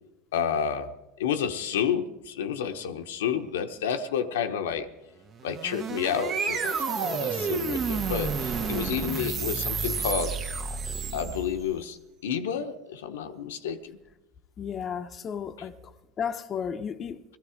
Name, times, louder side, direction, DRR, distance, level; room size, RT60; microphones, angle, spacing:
voice 1, 0.3-0.9 1.2-4.9 5.4-10.4 11.1-14.0, left 8 dB, 85° left, 1.0 m, -30 dB
sound 1, 5.3-11.7, right 5 dB, 45° right, 1.6 m, -30 dB
voice 2, 14.6-17.2, left 7 dB, 35° left, 0.9 m, -34 dB
19.0 x 13.5 x 5.0 m
hypercardioid pair, 100°, 0 cm